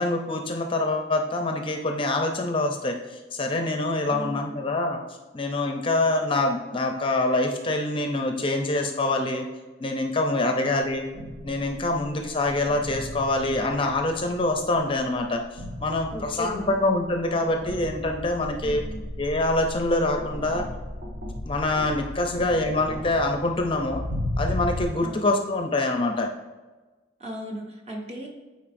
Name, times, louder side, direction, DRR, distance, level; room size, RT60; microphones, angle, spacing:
voice 1, 0.0-5.0 5.3-9.5 9.8-11.1 11.4-18.8 19.2-20.7 21.5-24.0 24.4-26.3, left 2 dB, 30° left, 4 dB, 0.5 m, -25 dB
voice 2, 4.1-4.6 16.1-16.8 18.6-19.1 25.0-25.3 27.2-28.3, equal, 35° right, -1 dB, 1.2 m, -36 dB
sound 1, 10.8-24.9, left 1 dB, 60° right, 1.2 m, -36 dB
8.8 x 4.3 x 2.6 m, 1.2 s
head